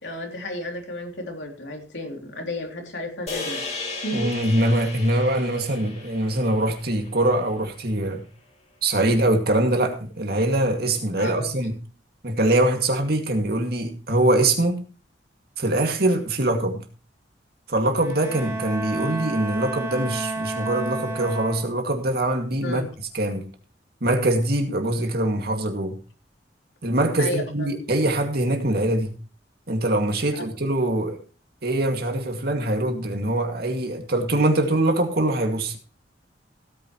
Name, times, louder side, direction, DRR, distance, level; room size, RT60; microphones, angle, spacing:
voice 1, 0.0-3.7 4.0-4.2 11.2-11.5 22.6-22.9 27.2-27.8, left 1 dB, 85° left, 3.2 m, -32 dB
sound 1, 3.3-7.7, left 3 dB, 40° left, 2.6 m, -36 dB
voice 2, 4.1-8.3 8.8-11.7 12.2-14.8 15.6-16.8 17.7-22.8 23.1-23.5 24.0-26.0 26.8-29.1 29.7-31.2 31.6-35.8, right 1 dB, 60° right, 2.3 m, -23 dB
Bowed string instrument, 17.9-22.0, right 2 dB, 15° right, 3.1 m, -31 dB
17.0 x 9.4 x 3.1 m
head